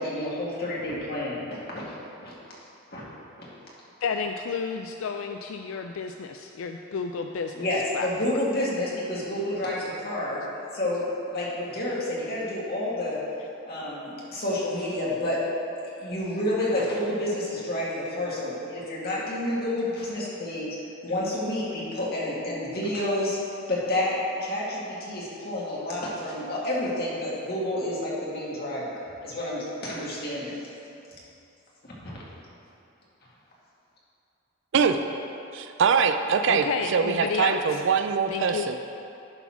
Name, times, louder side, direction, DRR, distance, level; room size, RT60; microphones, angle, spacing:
voice 1, 0.0-1.8 2.2-2.3 2.9-3.0 3.3-3.5 7.5-10.4 10.7-11.0 11.3-13.2 13.7-15.4 15.8-20.8 21.0-23.4 23.7-30.6 32.0-32.1, left 1 dB, 50° left, -6 dB, 2.0 m, -29 dB
voice 2, 4.0-7.6 7.9-8.1 36.5-37.8 38.3-38.7, left 5 dB, 70° left, 5 dB, 0.4 m, -31 dB
voice 3, 35.5-38.7, right 6 dB, 60° right, 8 dB, 0.4 m, -23 dB
11.0 x 4.1 x 5.8 m, 2.8 s
head